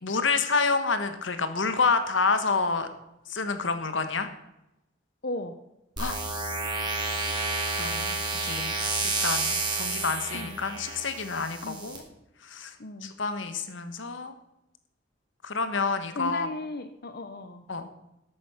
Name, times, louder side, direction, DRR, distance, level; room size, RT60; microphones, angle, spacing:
voice 1, 0.0-2.9 3.3-4.3 6.0-6.2 7.8-8.7 9.2-12.0 12.4-12.7 13.0-14.3 15.4-16.5 17.7-17.9, left 4 dB, 85° left, 9 dB, 1.4 m, -28 dB
voice 2, 5.2-5.6 10.3-10.6 11.6-11.9 12.8-13.1 16.1-17.6, left 2 dB, 55° left, 8 dB, 0.8 m, -36 dB
sound 1, 6.0-12.0, right 3 dB, 25° right, 2.9 m, -30 dB
12.5 x 8.6 x 5.7 m, 0.89 s
head